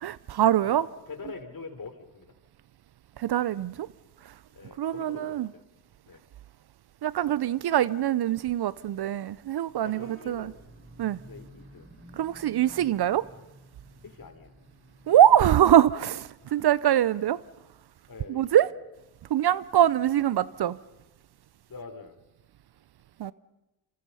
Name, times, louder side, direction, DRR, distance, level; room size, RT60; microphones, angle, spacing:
voice 1, 0.0-0.9 3.2-3.9 4.8-5.5 7.0-10.5 11.0-11.2 12.2-13.3 15.1-17.4 18.3-18.7 19.3-20.8 23.2-23.3, right 11 dB, 55° right, 0.7 m, -23 dB
voice 2, 0.6-2.4 4.5-5.6 6.1-6.2 7.7-7.8 9.8-10.6 11.3-11.9 12.8-12.9 14.0-14.5 16.4-16.8 18.1-18.5 21.7-22.2, left 4 dB, 45° left, 3.5 m, -44 dB
Vehicle horn car horn honking / Bus, 9.8-15.8, equal, 25° right, 7.4 m, -52 dB
26.5 x 26.0 x 5.6 m
supercardioid pair, 55°, 49 cm